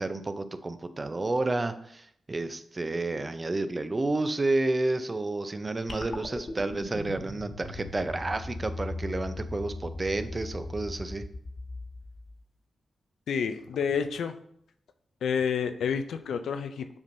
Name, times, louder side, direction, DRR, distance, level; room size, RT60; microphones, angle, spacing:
voice 1, 0.0-11.2, right 2 dB, 35° right, 10 dB, 0.6 m, -30 dB
sound 1, 5.9-12.4, left 2 dB, 50° left, 1.4 m, -38 dB
voice 2, 13.3-14.3 15.2-17.0, left 6 dB, 80° left, 8 dB, 0.4 m, -29 dB
7.1 x 5.2 x 2.6 m, 0.68 s
supercardioid pair, 45°, 0 cm